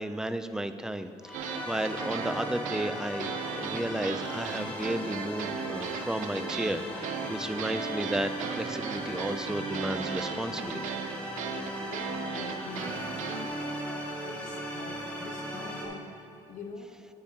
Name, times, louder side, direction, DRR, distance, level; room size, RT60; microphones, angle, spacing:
voice 1, 0.0-11.0, right 1 dB, 5° right, 10 dB, 0.4 m, -33 dB
sound 1, 1.2-15.9, equal, 10° left, 1.7 m, -37 dB
sound 2, 1.3-13.5, right 7 dB, 85° right, 0.5 m, -37 dB
voice 2, 11.9-13.1 14.3-16.0 16.5-16.9, left 5 dB, 85° left, 3 dB, 0.9 m, -44 dB
9.7 x 8.6 x 2.8 m, 2.9 s
cardioid pair, 90°, 13 cm